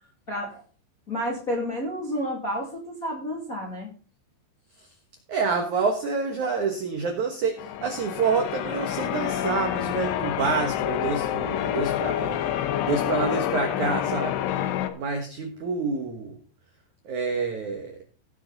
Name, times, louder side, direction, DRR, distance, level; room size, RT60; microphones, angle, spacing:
voice 1, 0.3-0.6 1.1-3.9, equal, 25° left, -2 dB, 1.9 m, -30 dB
voice 2, 5.3-12.4 12.8-14.4 14.9-16.4 17.0-18.0, right 5 dB, 70° right, 4 dB, 1.8 m, -28 dB
Church bell, 7.6-14.9, left 11 dB, 75° left, 2.8 m, -27 dB
18.0 x 6.5 x 4.0 m, 0.39 s
omnidirectional pair, 5.4 m